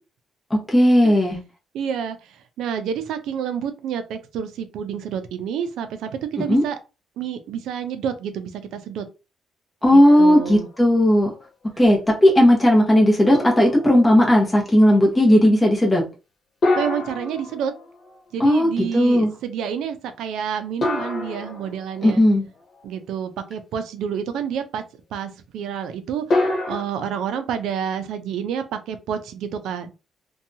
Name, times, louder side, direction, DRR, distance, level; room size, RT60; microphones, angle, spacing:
voice 1, 0.5-1.4 6.5-6.6 9.8-11.3 11.8-16.0 18.4-18.7 18.9-19.3 22.0-22.4, left 1 dB, 15° left, -1 dB, 0.9 m, -15 dB
voice 2, 1.7-6.8 7.2-9.0 9.9-10.7 16.8-17.7 18.3-22.2 22.8-24.8 25.1-29.9, right 8 dB, 85° right, 9 dB, 0.4 m, -29 dB
sound 1, 10.0-10.9 11.4-11.5 13.3-14.2 16.6-18.2 20.8-22.1 26.3-26.8, left 2 dB, 50° left, 1.1 m, -26 dB
2.7 x 2.3 x 2.6 m, 0.30 s
cardioid pair, 90°, 0 cm